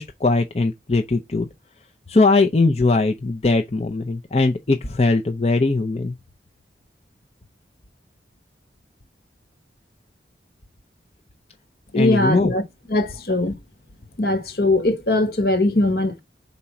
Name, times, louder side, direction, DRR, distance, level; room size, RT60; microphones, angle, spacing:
voice 1, 0.0-1.5 2.1-6.2 11.9-12.5, left 3 dB, 35° left, 0.6 m, -20 dB
voice 2, 11.9-12.6 12.9-13.5 14.2-16.2, left 2 dB, 60° left, 1.2 m, -20 dB
5.1 x 4.2 x 5.8 m
head